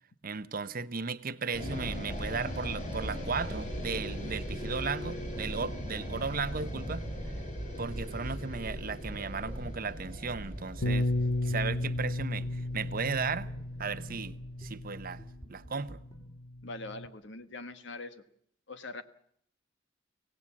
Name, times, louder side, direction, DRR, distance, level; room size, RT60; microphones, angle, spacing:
voice 1, 0.2-7.0 7.8-11.1 11.4-13.5 13.8-15.2 15.5-16.0, right 5 dB, 45° right, 0.9 m, -35 dB
sound 1, 1.5-15.8, equal, 40° left, 4.7 m, -39 dB
sound 2, 7.5-16.3, right 1 dB, 20° left, 4.2 m, -53 dB
Bass guitar, 10.8-15.3 16.1-17.1, left 1 dB, 85° left, 1.2 m, -33 dB
voice 2, 16.6-18.2 18.7-19.0, left 2 dB, 65° left, 1.4 m, -42 dB
24.5 x 17.5 x 7.3 m
head